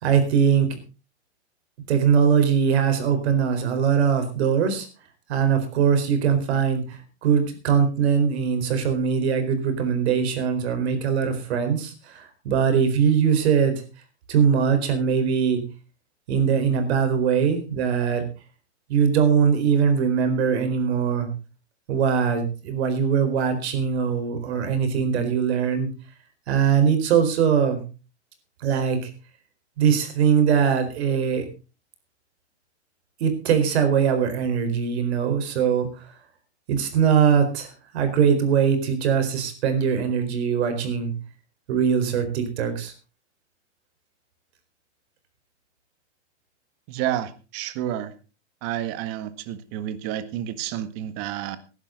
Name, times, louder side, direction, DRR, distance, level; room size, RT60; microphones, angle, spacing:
voice 1, 0.0-0.7 1.9-4.9 5.3-13.7 14.3-15.6 16.3-18.2 18.9-21.3 21.9-25.9 26.5-27.8 28.6-29.1 29.8-31.5 33.2-36.1 36.7-41.1 41.7-42.9, right 7 dB, 70° right, 8 dB, 4.3 m, -21 dB
voice 2, 46.9-48.1 48.6-51.6, right 11 dB, 40° right, 12 dB, 1.8 m, -30 dB
18.0 x 11.5 x 3.9 m, 0.33 s
supercardioid pair, 140°, 34 cm